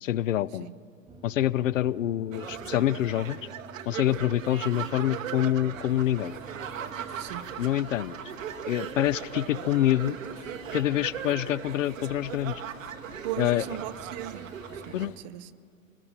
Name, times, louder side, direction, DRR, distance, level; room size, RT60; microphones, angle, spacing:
voice 1, 0.0-0.7 1.2-3.4 3.9-6.3 7.6-8.1 8.7-10.2 10.7-12.6 13.4-13.6 14.9-15.2, left 12 dB, 70° left, 0.6 m, -26 dB
sound 1, 1.1-15.2, right 4 dB, 10° right, 0.8 m, -50 dB
sound 2, 2.3-15.1, right 9 dB, 70° right, 1.3 m, -39 dB
sound 3, 5.9-15.2, left 9 dB, 40° left, 1.5 m, -52 dB
voice 2, 7.2-7.6 13.2-15.5, right 14 dB, 35° right, 0.5 m, -38 dB
26.0 x 20.0 x 5.7 m
hypercardioid pair, 105°, 40 cm